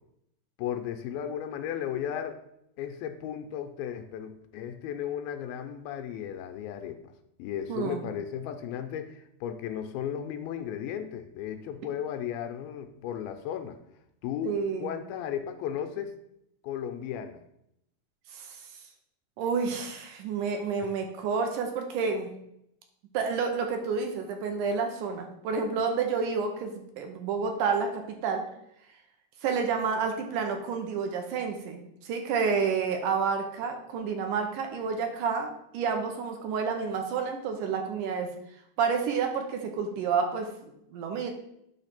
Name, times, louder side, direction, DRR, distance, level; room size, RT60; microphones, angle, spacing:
voice 1, 0.6-2.4 2.8-7.0 7.4-13.8 14.2-16.1 16.6-17.4 20.8-20.9, left 9 dB, 90° left, 6 dB, 2.4 m, -35 dB
voice 2, 7.7-8.0 14.4-15.0 18.3-18.6 19.4-22.3 23.1-28.4 29.4-38.3 38.8-41.3, right 5 dB, 75° right, 4 dB, 2.0 m, -29 dB
9.0 x 3.2 x 5.8 m, 0.78 s
omnidirectional pair, 4.1 m